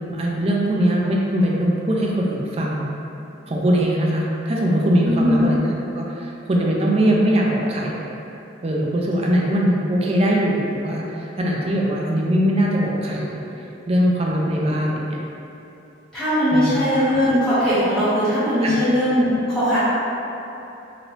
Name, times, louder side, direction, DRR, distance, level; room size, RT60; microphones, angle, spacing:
voice 1, 0.1-2.9 3.5-5.6 5.9-8.0 8.6-13.4 13.9-15.2 16.5-16.8 18.6-18.7, equal, 30° right, -3 dB, 0.3 m, -21 dB
voice 2, 16.1-19.8, equal, 5° left, -15 dB, 1.1 m, -19 dB
2.9 x 2.6 x 3.1 m, 2.9 s
head